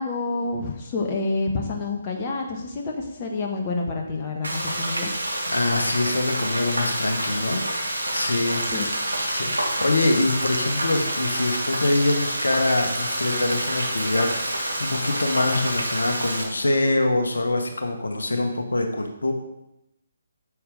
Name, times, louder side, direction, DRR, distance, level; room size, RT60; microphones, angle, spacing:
voice 1, 0.0-5.1 8.7-8.9, left 3 dB, 25° left, 1 dB, 1.5 m, -28 dB
Frying (food), 4.4-16.4, right 1 dB, 80° right, 2.2 m, -28 dB
voice 2, 5.5-8.6 9.3-19.3, left 2 dB, 65° left, 4 dB, 1.4 m, -24 dB
9.4 x 7.3 x 5.2 m, 0.86 s
figure-of-eight pair, 140°, 0 cm